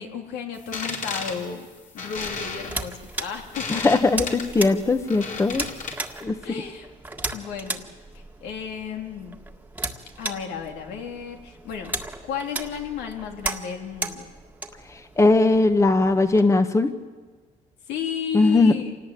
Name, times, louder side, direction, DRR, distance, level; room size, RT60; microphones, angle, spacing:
voice 1, 0.0-1.7 1.9-3.9 6.4-6.9 7.3-7.9 8.4-9.4 10.2-11.9 12.2-14.3 17.9-19.0, left 7 dB, 85° left, 3 dB, 3.0 m, -33 dB
sound 1, 0.6-6.2, left 4 dB, 50° left, 4.2 m, -34 dB
sound 2, 2.1-16.4, right 2 dB, 10° right, 1.7 m, -36 dB
voice 2, 3.7-5.6 6.2-6.4 14.9-16.9 18.3-18.7, left 3 dB, 15° left, 9 dB, 1.2 m, -19 dB
27.0 x 18.5 x 8.7 m, 1.4 s
cardioid pair, 110°, 17 cm